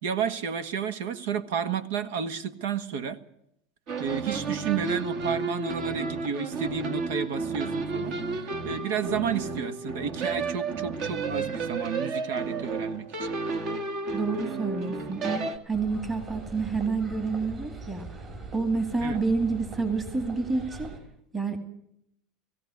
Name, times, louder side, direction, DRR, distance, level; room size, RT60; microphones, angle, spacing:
voice 1, 0.0-3.2 4.0-8.2 8.6-13.3 19.0-19.2, right 7 dB, 85° right, 12 dB, 1.6 m, -31 dB
sound 1, 3.9-15.6, right 4 dB, 50° right, 1.9 m, -32 dB
voice 2, 14.1-18.1 18.5-20.9 21.3-21.6, right 4 dB, 15° right, 7 dB, 2.3 m, -29 dB
sound 2, 15.7-21.0, right 3 dB, 30° right, 4.8 m, -41 dB
18.0 x 16.0 x 9.5 m, 0.75 s
supercardioid pair, 145°, 0 cm